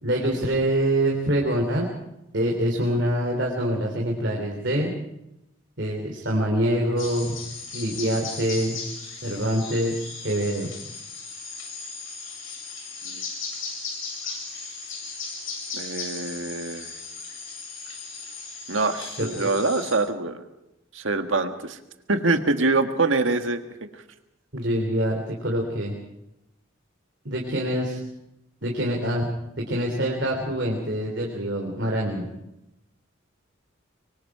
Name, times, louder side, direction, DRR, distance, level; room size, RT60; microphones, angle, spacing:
voice 1, 0.0-1.9 2.3-4.9 5.8-7.4 7.7-8.8 9.2-10.7 19.2-19.5 24.5-25.9 27.2-28.0 28.6-29.3 29.6-32.2, right 1 dB, 60° right, 0 dB, 3.4 m, -25 dB
sound 1, 7.0-19.9, left 4 dB, 80° left, 7.9 m, -37 dB
voice 2, 15.7-16.9 18.7-20.4 20.9-21.8 22.1-23.6 23.9-24.0, right 3 dB, 80° right, 7 dB, 1.7 m, -24 dB
25.5 x 23.5 x 4.9 m, 0.87 s
head